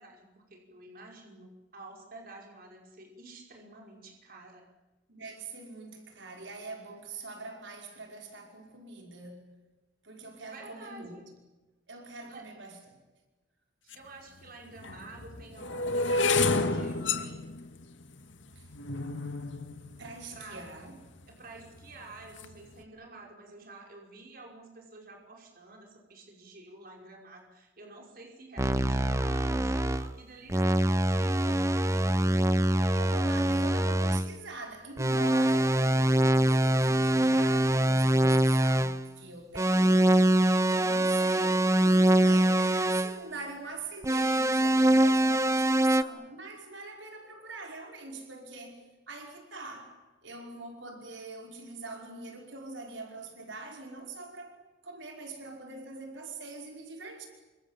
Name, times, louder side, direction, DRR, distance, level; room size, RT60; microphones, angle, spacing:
voice 1, 0.0-4.7 10.5-11.2 12.3-12.5 13.8-17.4 20.3-20.6 21.3-33.1 40.7-41.2, right 2 dB, 50° right, 5.4 m, -50 dB
voice 2, 5.1-9.5 10.0-11.2 11.9-13.0 18.5-18.7 20.0-21.0 32.9-40.2 40.7-57.3, right 3 dB, 70° right, 5.4 m, -43 dB
sound 1, 13.9-14.0 14.8-20.9 21.6-22.0 22.2-22.6, left 3 dB, 75° left, 2.2 m, -31 dB
sound 2, 28.6-30.1 30.5-34.3 35.0-39.0 39.6-43.2 44.0-46.0, right 1 dB, 15° right, 0.9 m, -24 dB
29.0 x 26.0 x 7.5 m
head